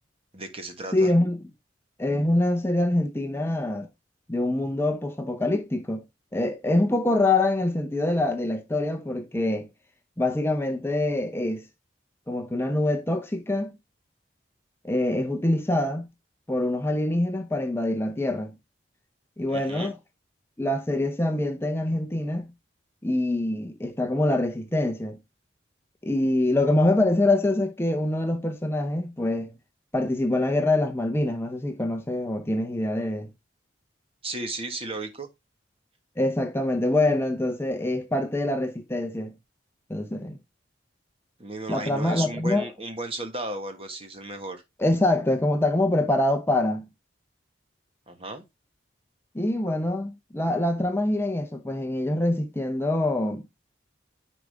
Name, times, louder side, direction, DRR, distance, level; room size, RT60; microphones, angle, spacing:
voice 1, 0.3-1.1 19.5-19.9 34.2-35.3 41.4-44.6 48.1-48.4, right 2 dB, 30° right, 1.5 m, -34 dB
voice 2, 0.9-1.4 2.0-3.9 4.3-6.0 6.3-9.7 10.2-11.7 12.3-13.7 14.8-16.1 16.5-18.5 19.4-20.0 20.6-22.5 23.0-25.2 26.0-29.5 29.9-33.3 36.2-39.3 39.9-40.4 41.7-42.7 44.8-46.9 49.3-53.4, left 1 dB, 15° left, 0.7 m, -25 dB
10.0 x 4.9 x 3.5 m
head